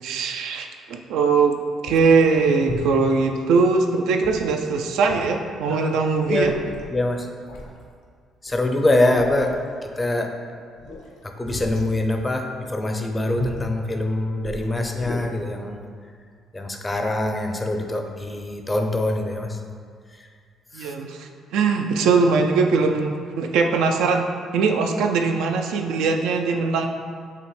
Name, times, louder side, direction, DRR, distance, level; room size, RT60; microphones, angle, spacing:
voice 1, 0.0-1.5 1.8-6.5 20.7-24.2 24.5-26.9, right 4 dB, 85° right, 4 dB, 0.3 m, -21 dB
sound 1, 1.4-1.5 1.9-2.2 2.7-3.1 4.2-4.7 5.1-5.3 5.6-5.7 6.1-6.9 7.5-7.8 8.5-8.7 9.1-9.7 10.8-11.9 13.4-13.7 14.4-15.2, left 2 dB, 85° left, 0.6 m, -34 dB
voice 2, 6.2-6.5 6.9-7.3 8.4-9.6 9.8-10.3 11.2-15.8 16.5-19.6 20.7-20.9, left 1 dB, 20° left, 4 dB, 0.4 m, -24 dB
5.6 x 2.1 x 3.2 m, 2.1 s
cardioid pair, 85°, 0 cm